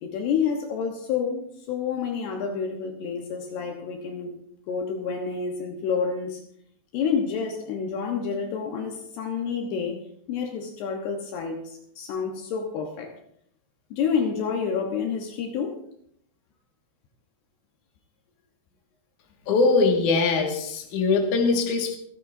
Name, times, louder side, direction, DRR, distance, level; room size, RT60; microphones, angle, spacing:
voice 1, 0.0-4.3 4.7-6.4 6.9-10.0 10.3-13.1 13.9-15.8, left 6 dB, 75° left, 2 dB, 3.2 m, -29 dB
voice 2, 19.5-22.0, left 4 dB, 50° left, 2 dB, 3.1 m, -22 dB
27.5 x 11.0 x 2.7 m, 0.68 s
omnidirectional pair, 5.0 m